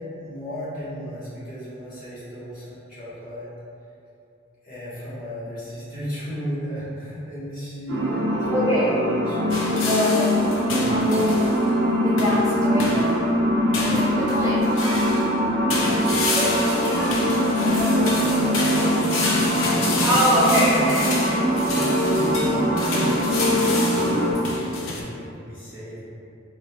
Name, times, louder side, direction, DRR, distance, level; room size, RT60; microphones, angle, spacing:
voice 1, 0.0-3.5 4.6-9.9 10.5-11.2 16.3-20.9 21.7-26.0, equal, 40° left, -10 dB, 1.3 m, -34 dB
sound 1, 7.9-24.3, equal, 65° right, 0.8 m, -22 dB
voice 2, 8.5-8.9 9.9-10.4 10.9-11.5 12.0-13.2 13.8-14.7 17.0-17.1 20.0-21.4, equal, 15° right, -8 dB, 0.4 m, -23 dB
sound 2, 9.5-11.6 12.2-12.5 12.8-13.2 13.7-15.3 15.7-25.0, left 3 dB, 75° left, 0.6 m, -29 dB
4.2 x 3.1 x 2.3 m, 2.5 s
head